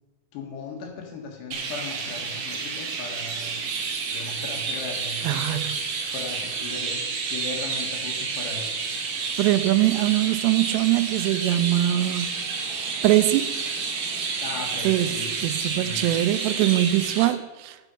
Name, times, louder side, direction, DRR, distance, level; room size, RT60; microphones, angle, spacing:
voice 1, 0.3-5.6 6.1-8.7 14.4-15.3 15.7-16.1, left 4 dB, 85° left, 3.8 m, -38 dB
Chirp tweet, 1.5-17.3, right 5 dB, 65° right, 1.6 m, -30 dB
voice 2, 5.2-5.7 9.4-12.4 13.0-13.5 14.8-15.1 15.4-17.8, right 15 dB, 85° right, 2.7 m, -22 dB
8.7 x 8.1 x 5.4 m
omnidirectional pair, 4.8 m